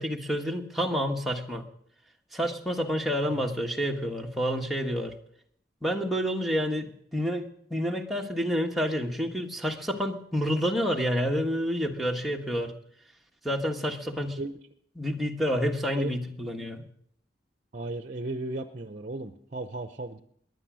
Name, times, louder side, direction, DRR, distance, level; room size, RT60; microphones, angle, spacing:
voice 1, 0.0-1.6 2.3-5.1 5.8-7.4 7.7-12.7 13.4-14.4 15.0-16.8, equal, ahead, 1 dB, 1.4 m, -29 dB
voice 2, 3.2-3.6 14.4-14.6 16.0-16.1 17.7-20.2, right 2 dB, 45° right, 9 dB, 0.7 m, -36 dB
21.0 x 9.4 x 6.3 m, 0.68 s
head